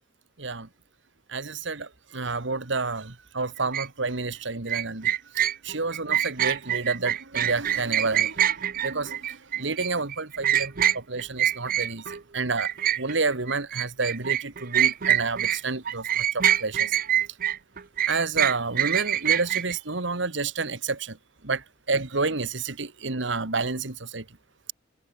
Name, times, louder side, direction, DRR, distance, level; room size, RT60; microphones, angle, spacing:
voice 1, 0.4-0.7 1.3-17.0 18.1-21.2 21.4-24.3, right 3 dB, 65° right, 1.8 m, -30 dB
sound 1, 3.7-3.9 4.7-12.2 12.6-15.6 15.9-19.7, right 11 dB, 45° right, 0.7 m, -25 dB
head